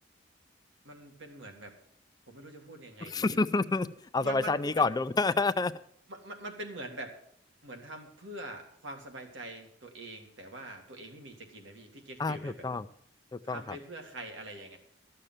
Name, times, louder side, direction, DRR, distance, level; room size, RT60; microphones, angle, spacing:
voice 1, 0.8-1.7 2.3-3.4 4.2-4.9 6.1-7.1 7.6-12.7 13.4-14.8, right 1 dB, 80° right, 4 dB, 2.0 m, -44 dB
voice 2, 3.0-5.7 12.2-12.9 13.3-13.8, left 3 dB, 20° left, 13 dB, 0.4 m, -29 dB
13.0 x 6.7 x 7.3 m, 0.67 s
head